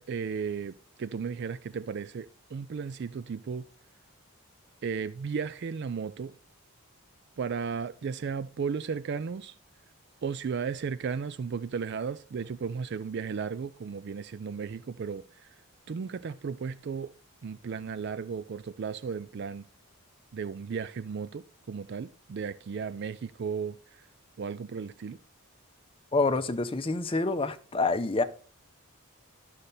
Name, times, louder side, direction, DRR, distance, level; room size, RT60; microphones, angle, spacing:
voice 1, 0.0-3.7 4.8-6.3 7.4-9.5 10.2-15.5 15.9-17.1 17.4-19.6 20.3-24.1 24.4-25.2, right 6 dB, 50° right, 0.3 m, -35 dB
voice 2, 26.1-28.2, left 3 dB, 25° left, 0.6 m, -27 dB
11.5 x 6.6 x 4.1 m
head